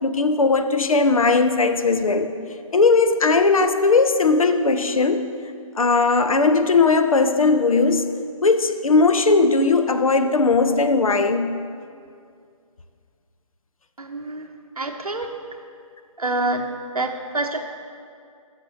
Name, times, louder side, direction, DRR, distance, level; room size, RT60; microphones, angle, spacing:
voice 1, 0.0-2.4 2.7-5.3 5.8-8.1 8.4-11.6, left 3 dB, 70° left, 8 dB, 0.6 m, -18 dB
voice 2, 14.0-14.4 14.8-15.3 16.2-16.6 16.9-17.6, right 2 dB, 85° right, 4 dB, 0.7 m, -26 dB
11.5 x 6.6 x 3.2 m, 2.3 s
figure-of-eight pair, 140°, 18 cm